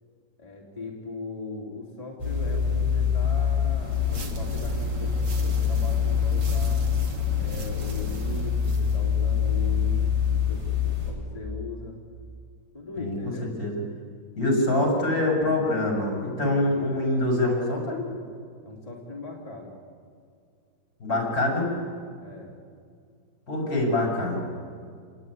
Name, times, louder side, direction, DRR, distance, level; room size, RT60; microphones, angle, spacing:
voice 1, 0.4-6.8 7.4-12.0 12.7-13.5 18.6-19.7 22.2-22.5, left 3 dB, 20° left, -3 dB, 3.4 m, -39 dB
sound 1, 2.2-11.1, left 7 dB, 35° right, 6.8 m, -25 dB
sound 2, 3.8-9.0, right 2 dB, 65° right, 2.7 m, -38 dB
voice 2, 14.4-18.0 21.0-21.7 23.5-24.4, left 1 dB, 50° left, 0 dB, 7.4 m, -24 dB
29.0 x 20.0 x 9.8 m, 2.2 s
omnidirectional pair, 2.0 m